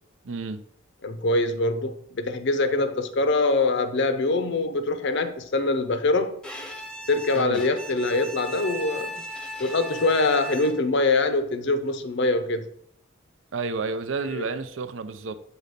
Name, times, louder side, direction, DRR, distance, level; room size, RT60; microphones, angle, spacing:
voice 1, 0.2-0.6 7.3-7.6 13.5-15.4, right 4 dB, 65° right, 0.5 m, -30 dB
voice 2, 1.0-6.4 7.1-9.2 9.6-12.7 14.3-14.4, left 2 dB, 60° left, 0.7 m, -24 dB
Bowed string instrument, 6.4-11.0, equal, 5° left, 0.6 m, -37 dB
7.0 x 4.2 x 5.2 m
head